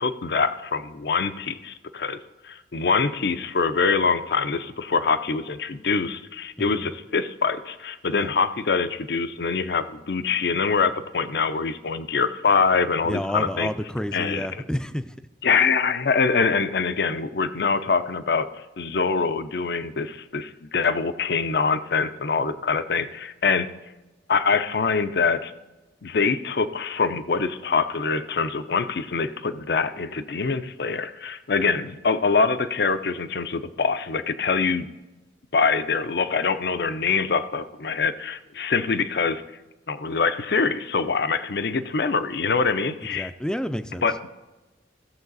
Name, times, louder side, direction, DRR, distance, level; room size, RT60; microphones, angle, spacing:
voice 1, 0.0-2.2 2.4-13.7 14.1-14.5 15.4-18.5 18.8-23.7 24.3-25.5 26.0-34.9 35.5-39.4 39.9-43.3 44.0-44.3, left 5 dB, 65° left, 12 dB, 0.6 m, -24 dB
voice 2, 6.6-6.9 8.1-8.3 13.0-15.1 43.1-44.1, equal, 5° left, 11 dB, 0.4 m, -30 dB
15.5 x 7.2 x 4.0 m, 1.1 s
head